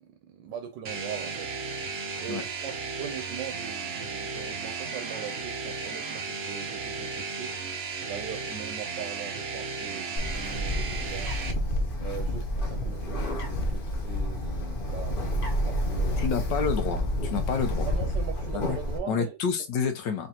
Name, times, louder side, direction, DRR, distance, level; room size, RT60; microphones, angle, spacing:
voice 1, 0.0-1.5 2.2-7.6 8.1-16.4 17.9-19.4, right 8 dB, 85° right, 1.3 m, -41 dB
sound 1, 0.8-11.5, right 4 dB, 60° right, 0.6 m, -35 dB
Bird, 10.2-19.0, equal, 40° left, 0.8 m, -29 dB
voice 2, 16.2-17.9 18.5-18.8 19.1-20.3, left 6 dB, 80° left, 1.5 m, -29 dB
3.9 x 3.5 x 2.8 m
omnidirectional pair, 1.9 m